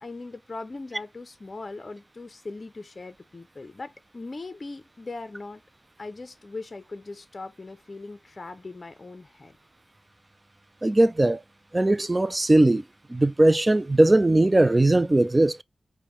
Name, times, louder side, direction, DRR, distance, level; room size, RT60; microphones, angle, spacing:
voice 1, 0.0-5.6 6.0-9.6, left 3 dB, 40° left, 0.5 m, -40 dB
voice 2, 10.8-11.4 11.7-12.8 13.1-15.6, right 1 dB, 25° right, 0.3 m, -19 dB
5.0 x 2.1 x 3.1 m
wide cardioid pair, 80°, 0 cm